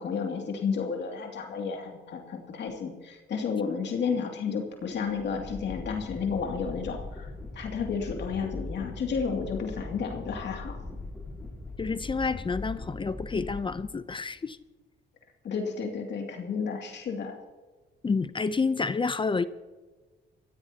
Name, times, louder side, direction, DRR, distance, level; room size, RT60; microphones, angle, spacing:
voice 1, 0.0-10.8 15.4-17.4, left 6 dB, 60° left, 2 dB, 2.5 m, -32 dB
sound 1, 4.8-14.3, left 2 dB, 10° left, 3.7 m, -40 dB
voice 2, 11.8-14.6 18.0-19.4, left 4 dB, 25° left, 14 dB, 0.6 m, -29 dB
22.0 x 15.5 x 2.9 m, 1.3 s
cardioid pair, 90°, 20 cm